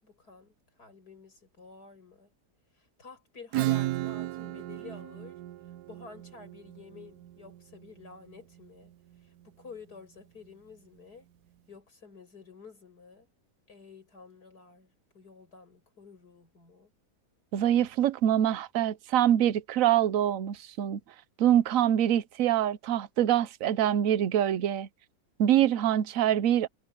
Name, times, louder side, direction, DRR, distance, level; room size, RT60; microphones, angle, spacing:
voice 1, 0.0-2.3 2.7-5.4 5.9-8.9 9.2-11.3 11.7-13.3 13.7-16.9, left 4 dB, 80° left, 7.1 m, -50 dB
Acoustic guitar / Strum, 3.5-8.9, right 16 dB, 85° right, 1.1 m, -34 dB
voice 2, 17.5-21.0 21.4-24.9 25.4-26.7, right 11 dB, 60° right, 1.1 m, -25 dB
omnidirectional pair, 1.7 m